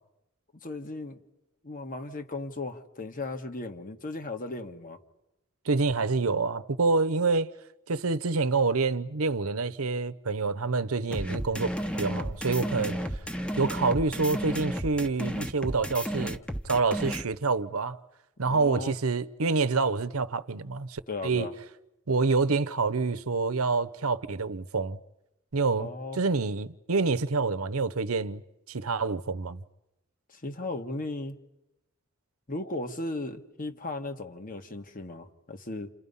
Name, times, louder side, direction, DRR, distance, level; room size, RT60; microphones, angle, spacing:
voice 1, 0.6-1.2 1.6-5.0 18.4-19.0 21.1-21.5 25.8-26.2 30.3-31.4 32.5-35.9, left 2 dB, 40° left, 1.6 m, -36 dB
voice 2, 5.6-7.5 7.9-13.0 13.6-16.4 16.6-18.0 18.4-21.5 22.1-25.0 25.5-28.4 28.7-29.6, right 4 dB, 85° right, 0.9 m, -27 dB
sound 1, 11.1-17.2, equal, 5° left, 1.1 m, -32 dB
29.5 x 29.0 x 5.5 m
head